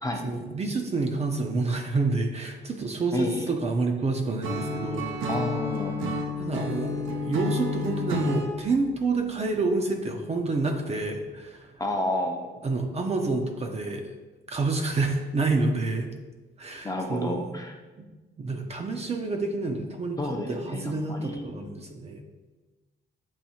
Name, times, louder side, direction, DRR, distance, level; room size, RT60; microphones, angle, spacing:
voice 1, 0.2-5.1 6.4-11.7 12.6-14.1 14.5-16.1 16.6-17.4 18.0-18.1 18.4-22.2, right 3 dB, 30° right, 3 dB, 0.5 m, -28 dB
voice 2, 3.1-3.5 5.3-6.0 11.8-12.6 16.8-17.8 20.2-21.5, left 1 dB, 20° left, 3 dB, 0.6 m, -30 dB
Acoustic guitar / Strum, 4.4-8.5, left 2 dB, 85° right, 0.6 m, -30 dB
7.1 x 2.6 x 2.8 m, 1.2 s
cardioid pair, 90°, 20 cm